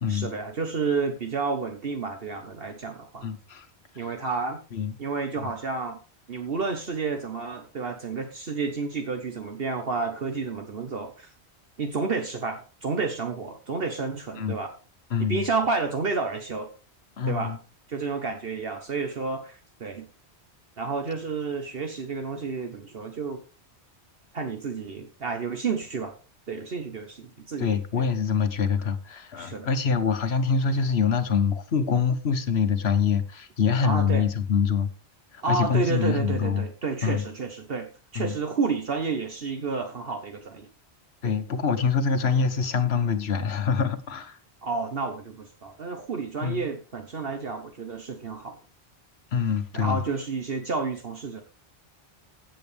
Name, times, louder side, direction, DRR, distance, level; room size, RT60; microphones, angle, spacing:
voice 1, 0.1-3.3 3.9-4.6 5.0-6.0 6.3-11.3 11.8-14.7 15.2-16.7 17.3-17.5 17.9-20.0 20.8-23.4 24.3-26.1 26.5-28.1 29.4-29.7 33.8-34.3 35.4-40.7 41.2-41.3 44.6-48.6 49.7-51.4, right 4 dB, 60° right, 1.4 m, -30 dB
voice 2, 3.2-3.7 4.7-4.9 5.4-5.5 14.4-14.5 15.1-15.4 17.2-17.6 27.6-34.9 35.3-36.6 37.0-37.2 38.1-38.4 41.2-44.4 46.4-46.7 49.3-50.0, left 6 dB, 75° left, 1.4 m, -25 dB
15.5 x 7.8 x 3.4 m
omnidirectional pair, 1.1 m